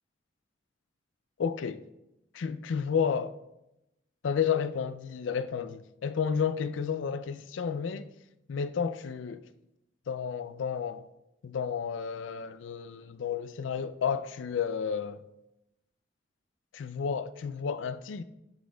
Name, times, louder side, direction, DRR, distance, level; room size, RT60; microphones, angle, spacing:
voice 1, 1.4-1.8 2.3-3.4 4.2-8.1 8.5-9.4 10.1-11.1 11.4-15.2 16.7-18.2, left 6 dB, 85° left, 0.4 m, -31 dB
11.0 x 6.1 x 2.3 m
head